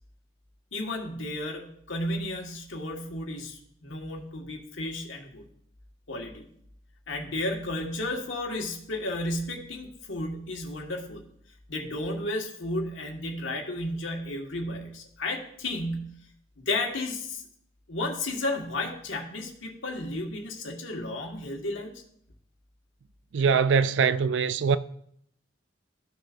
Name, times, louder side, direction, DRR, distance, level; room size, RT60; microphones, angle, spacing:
voice 1, 0.7-5.4 6.1-6.5 7.1-11.3 11.7-16.2 16.6-17.4 17.9-21.9, left 1 dB, 90° left, 1.6 m, -33 dB
voice 2, 23.3-24.8, right 6 dB, 70° right, 0.4 m, -22 dB
14.0 x 6.4 x 2.5 m
head